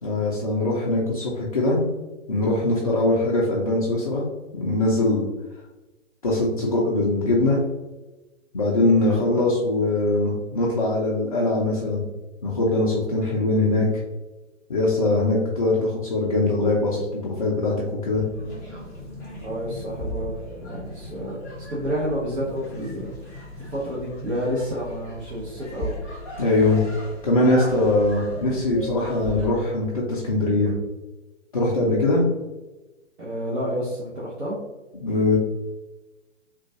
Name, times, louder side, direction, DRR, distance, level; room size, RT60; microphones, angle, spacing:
voice 1, 0.0-1.8 2.3-4.2 4.5-5.2 6.2-7.6 8.5-12.0 12.4-13.8 14.7-17.7 18.0-18.2 26.4-26.9 27.2-30.7 31.5-32.2 34.9-35.4, left 2 dB, 30° left, -4 dB, 0.4 m, -22 dB
voice 2, 9.0-9.4 19.4-21.4 21.7-26.0 33.2-34.6, equal, 55° right, -6 dB, 1.0 m, -30 dB
sound 1, 18.1-29.5, left 1 dB, 10° left, 0.8 m, -37 dB
3.7 x 2.4 x 2.7 m, 1.1 s
figure-of-eight pair, 130°, 37 cm